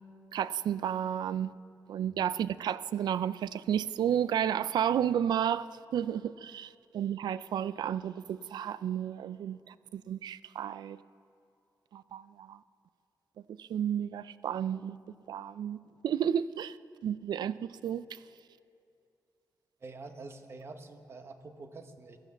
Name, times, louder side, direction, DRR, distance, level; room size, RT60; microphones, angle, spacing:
voice 1, 0.3-1.5 1.9-5.7 5.9-11.0 11.9-12.6 13.6-15.0 15.3-15.8 16.0-16.7 17.0-18.0, right 9 dB, 85° right, 0.4 m, -32 dB
voice 2, 19.8-22.2, right 3 dB, 35° right, 1.0 m, -47 dB
16.0 x 12.5 x 7.0 m
wide cardioid pair, 160°, 7 cm